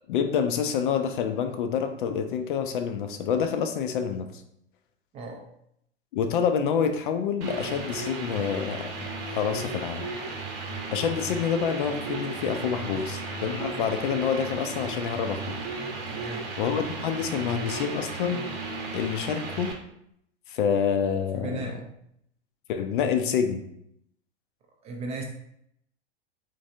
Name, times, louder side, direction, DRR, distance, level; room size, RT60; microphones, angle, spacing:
voice 1, 0.1-4.4 6.1-8.9 9.2-10.1 10.9-15.6 16.6-18.4 18.9-19.7 20.5-21.6 22.7-23.6, left 7 dB, 50° left, 7 dB, 0.5 m, -27 dB
voice 2, 5.1-5.5 12.9-13.0 16.1-16.5 21.3-21.9 24.8-25.2, right 3 dB, 20° right, 2 dB, 0.4 m, -36 dB
sound 1, 7.4-19.7, right 3 dB, 40° right, 0.8 m, -35 dB
3.8 x 3.2 x 2.6 m, 0.74 s
figure-of-eight pair, 95°, 33 cm